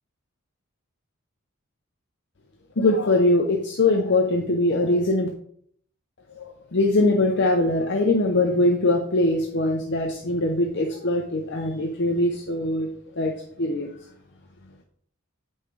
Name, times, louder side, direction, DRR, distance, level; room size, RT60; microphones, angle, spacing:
voice 1, 2.8-5.3 6.3-12.9 13.2-13.3 13.6-13.9, left 2 dB, 55° left, 1 dB, 0.7 m, -22 dB
8.1 x 5.6 x 3.3 m, 0.63 s
head